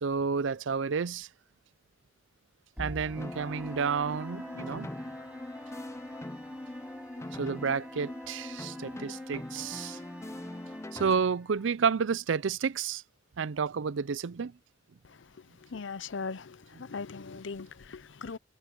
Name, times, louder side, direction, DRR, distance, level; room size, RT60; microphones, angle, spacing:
voice 1, 0.0-1.3 2.8-4.9 7.4-10.0 10.9-13.0 13.4-14.5 16.7-16.8, right 5 dB, 70° right, 0.5 m, -30 dB
sound 1, 2.8-11.7, equal, 5° right, 6.7 m, -48 dB
sound 2, 3.2-11.2, left 1 dB, 15° left, 0.5 m, -41 dB
voice 2, 15.7-18.4, left 4 dB, 65° left, 0.7 m, -39 dB
head